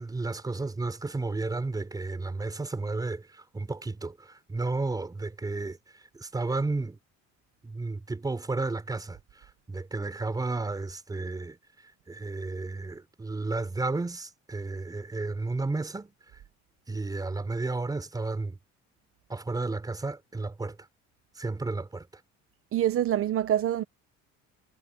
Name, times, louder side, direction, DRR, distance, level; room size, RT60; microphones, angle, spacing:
voice 1, 0.0-5.8 6.1-7.0 7.6-11.6 12.1-16.1 16.9-18.6 19.3-20.8 21.4-22.2, right 3 dB, 10° right, 4.7 m, -32 dB
voice 2, 22.7-23.8, right 11 dB, 45° right, 1.3 m, -25 dB
cardioid pair, 175°, 31 cm